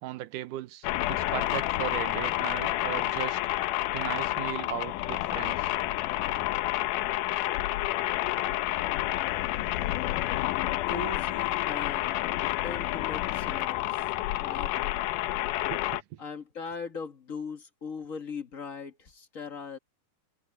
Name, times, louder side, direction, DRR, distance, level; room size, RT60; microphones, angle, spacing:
voice 1, 0.0-3.4 3.9-5.7 15.7-16.2, right 13 dB, 80° right, 2.4 m, -37 dB
sound 1, 0.8-16.0, left 16 dB, 90° left, 2.3 m, -29 dB
voice 2, 10.9-12.1 12.6-14.9 16.2-19.8, left 4 dB, 40° left, 1.2 m, -39 dB
omnidirectional pair, 3.6 m